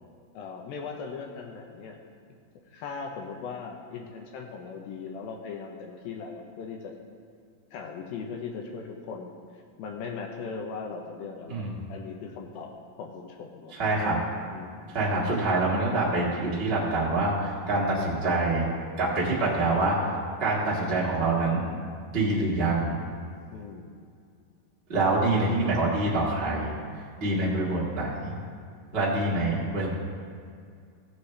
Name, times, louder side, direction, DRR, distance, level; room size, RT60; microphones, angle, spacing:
voice 1, 0.3-2.0 2.7-6.9 7.7-9.4 9.8-12.7 13.0-13.8 14.5-15.0 15.3-15.6 23.5-23.9 25.0-25.2 26.8-26.9, left 5 dB, 80° left, 2 dB, 2.5 m, -39 dB
voice 2, 13.7-14.2 14.9-18.7 19.0-20.0 20.4-21.7 22.1-23.0 24.9-26.7 27.2-28.3 28.9-29.9, right 2 dB, 55° right, -6 dB, 0.6 m, -26 dB
17.0 x 6.5 x 3.2 m, 2.2 s
omnidirectional pair, 4.3 m